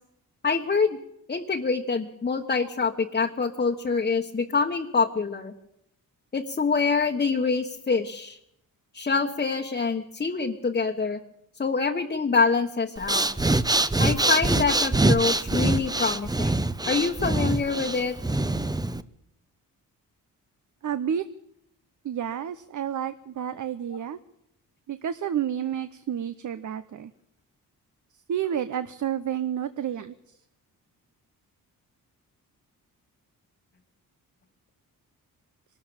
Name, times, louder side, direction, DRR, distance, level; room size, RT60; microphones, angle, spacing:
voice 1, 0.4-1.0 1.3-5.5 6.3-8.4 8.9-11.2 11.6-13.3 14.0-18.2, left 4 dB, 25° left, 2 dB, 1.3 m, -25 dB
Breathing, 13.0-19.0, right 2 dB, 10° right, 0.8 m, -24 dB
voice 2, 20.8-21.2 22.0-24.2 24.9-27.1 28.3-30.1, right 9 dB, 55° right, 12 dB, 0.8 m, -30 dB
22.5 x 13.0 x 8.9 m, 0.77 s
cardioid pair, 115°, 36 cm